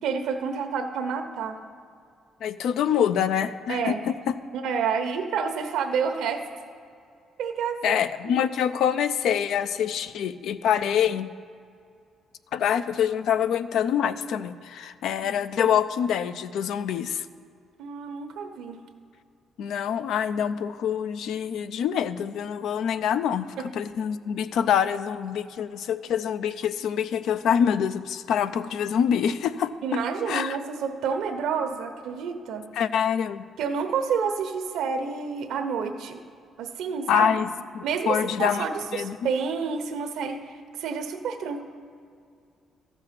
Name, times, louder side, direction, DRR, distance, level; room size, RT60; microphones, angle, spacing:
voice 1, 0.0-1.6 3.7-4.0 4.5-6.4 7.4-8.0 8.2-8.5 17.8-18.8 23.6-23.7 29.8-32.7 33.6-36.2 36.6-37.4 37.8-40.4 40.8-41.6, right 6 dB, 85° right, 6 dB, 0.9 m, -29 dB
voice 2, 2.4-4.4 7.8-11.3 12.5-17.3 19.6-30.0 30.3-30.6 32.7-33.4 37.1-37.5 37.7-38.6 38.9-39.3, left 8 dB, 80° left, 12 dB, 0.4 m, -25 dB
13.5 x 6.2 x 5.8 m, 2.4 s
cardioid pair, 90°, 0 cm